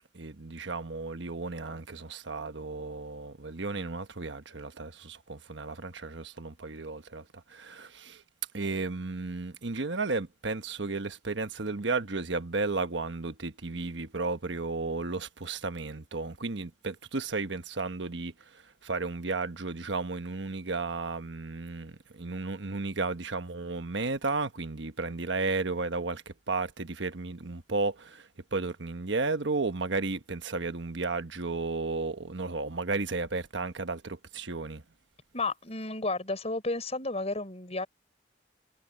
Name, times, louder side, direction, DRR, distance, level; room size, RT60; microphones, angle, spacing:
voice 1, 0.1-8.2 8.5-34.8, right 3 dB, 80° right, 1.2 m, -33 dB
voice 2, 35.3-37.9, left 2 dB, 35° left, 5.8 m, -32 dB
head